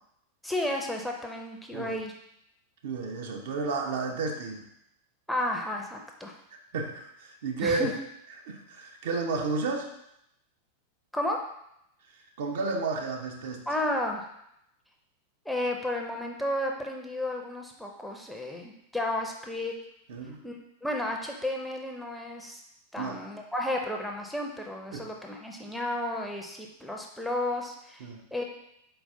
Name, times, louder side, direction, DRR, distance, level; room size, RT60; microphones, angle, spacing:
voice 1, 0.4-2.1 5.3-6.3 7.6-7.9 11.1-11.4 13.7-14.2 15.5-19.7 20.4-20.6 20.8-22.6 22.9-28.4, left 1 dB, ahead, 1 dB, 0.6 m, -32 dB
voice 2, 2.8-4.7 6.7-7.9 8.5-9.9 12.1-13.7 20.1-20.4 23.0-23.2 24.9-25.1 28.0-28.2, right 3 dB, 55° right, 2 dB, 0.6 m, -32 dB
4.5 x 3.8 x 2.6 m, 0.78 s
figure-of-eight pair, 90°, 0 cm